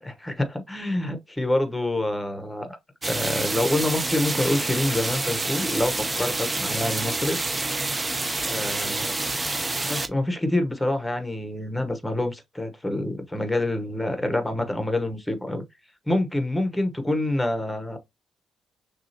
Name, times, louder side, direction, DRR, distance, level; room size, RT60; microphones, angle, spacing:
voice 1, 0.0-2.7 3.1-7.4 8.4-9.1 9.8-15.6 16.1-18.0, left 1 dB, 5° left, 1.0 m, -26 dB
sound 1, 3.0-10.1, right 2 dB, 15° right, 0.6 m, -28 dB
6.1 x 2.4 x 2.8 m
cardioid pair, 120°, 0 cm